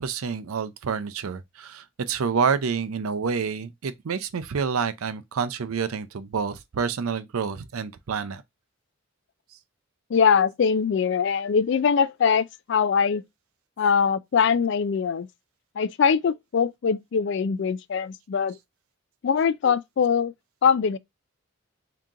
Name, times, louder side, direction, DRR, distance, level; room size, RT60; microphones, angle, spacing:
voice 1, 0.0-8.4, right 6 dB, 85° right, 0.5 m, -28 dB
voice 2, 10.1-13.2 13.8-15.3 15.8-18.6 19.2-20.3 20.6-21.0, left 6 dB, 55° left, 0.3 m, -22 dB
3.7 x 2.8 x 3.6 m
head